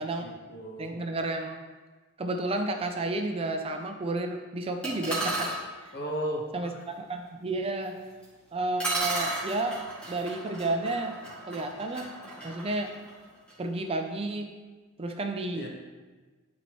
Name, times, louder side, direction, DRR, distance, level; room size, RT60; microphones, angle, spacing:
voice 1, 0.0-0.9 5.9-6.8 15.5-15.7, equal, 50° left, 0 dB, 1.2 m, -35 dB
voice 2, 0.8-1.6 2.2-5.5 5.8-5.9 6.5-8.0 8.5-9.8 10.1-11.2 11.5-12.1 12.4-12.9 13.6-14.5 15.0-15.7, right 2 dB, 25° right, 4 dB, 0.4 m, -31 dB
sound 1, 4.8-5.6 8.2-8.3 8.8-13.6, right 2 dB, 5° left, 2.1 m, -34 dB
11.5 x 4.1 x 3.1 m, 1.3 s
head